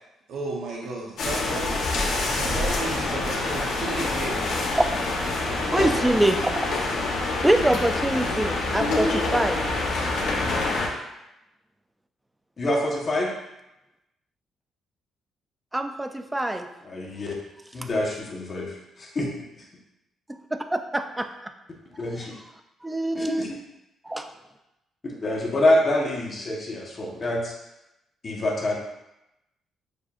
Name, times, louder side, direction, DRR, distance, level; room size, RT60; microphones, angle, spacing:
voice 1, 0.3-1.7 2.2-4.4, right 3 dB, 75° right, -3 dB, 0.8 m, -33 dB
sound 1, 1.2-10.9, left 2 dB, 70° left, 0.8 m, -26 dB
voice 2, 5.7-6.8 7.4-9.6 15.7-16.7 20.5-21.5 22.8-23.4 24.0-24.3, right 1 dB, 10° right, 7 dB, 0.3 m, -24 dB
voice 3, 12.6-13.3 16.9-17.3 17.7-19.3 19.6-19.7 22.0-22.3 23.1-23.5 25.0-27.5 28.2-28.8, left 1 dB, 35° left, -2 dB, 1.1 m, -26 dB
6.6 x 2.6 x 2.4 m, 0.91 s
cardioid pair, 90°, 0 cm